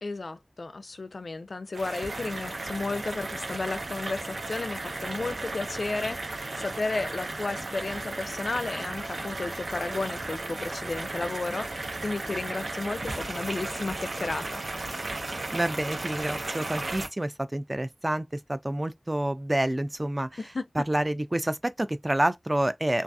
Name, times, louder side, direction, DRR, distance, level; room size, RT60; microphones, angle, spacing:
voice 1, 0.0-14.6 20.4-20.7, left 3 dB, 75° left, 0.3 m, -33 dB
sound 1, 1.7-17.1, right 2 dB, 75° right, 0.6 m, -35 dB
voice 2, 15.5-20.3 20.8-23.0, right 1 dB, 25° right, 0.4 m, -28 dB
2.4 x 2.3 x 2.6 m
wide cardioid pair, 55°, 0 cm